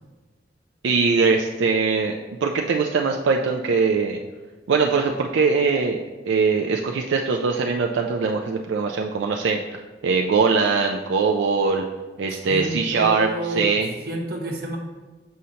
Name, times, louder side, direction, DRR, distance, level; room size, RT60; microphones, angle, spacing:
voice 1, 0.8-2.1 2.4-4.2 4.7-6.0 6.3-9.6 10.0-11.8 12.2-13.3 13.6-13.9, right 4 dB, 85° right, 2 dB, 0.4 m, -21 dB
voice 2, 12.3-13.8 14.1-14.8, right 1 dB, 60° right, 1 dB, 1.1 m, -29 dB
6.3 x 5.5 x 2.8 m, 1.3 s
head